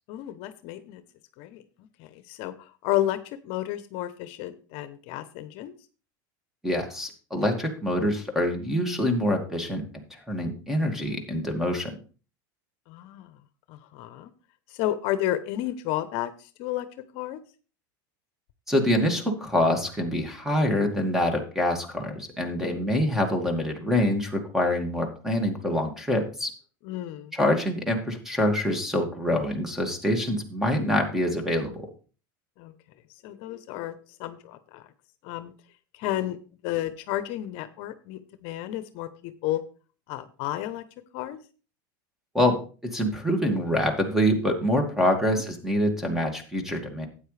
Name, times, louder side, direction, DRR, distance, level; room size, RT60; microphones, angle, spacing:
voice 1, 0.1-1.0 1.4-1.6 2.0-3.2 3.4-5.7 12.9-13.3 13.7-14.3 14.8-16.3 16.6-16.9 17.1-17.4 22.6-22.7 26.8-27.3 32.6-32.7 33.2-33.9 34.2-34.8 35.2-35.5 36.0-36.4 36.6-39.6 40.1-40.8 41.1-41.4 45.3-45.4, left 14 dB, 60° left, 12 dB, 0.9 m, -31 dB
voice 2, 6.6-9.8 10.3-11.9 18.7-26.5 27.3-31.9 42.3-42.6 42.9-47.1, left 1 dB, 5° right, 5 dB, 2.3 m, -25 dB
12.5 x 8.9 x 3.4 m, 0.36 s
supercardioid pair, 125°, 11 cm